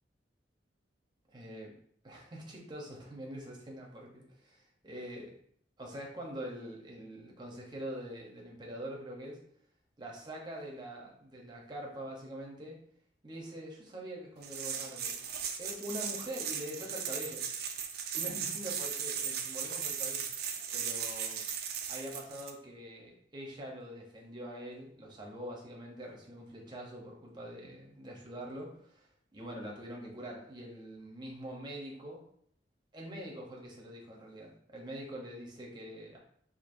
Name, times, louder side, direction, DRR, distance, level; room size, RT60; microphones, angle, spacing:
voice 1, 1.3-1.7 2.0-5.3 5.8-9.4 10.0-12.8 13.2-17.4 18.1-20.3 20.7-21.4 21.9-32.2 32.9-36.2, equal, 25° right, -1 dB, 0.8 m, -44 dB
sound 1, 14.4-22.5, right 7 dB, 60° right, 0.4 m, -37 dB
4.4 x 2.7 x 2.6 m, 0.65 s
head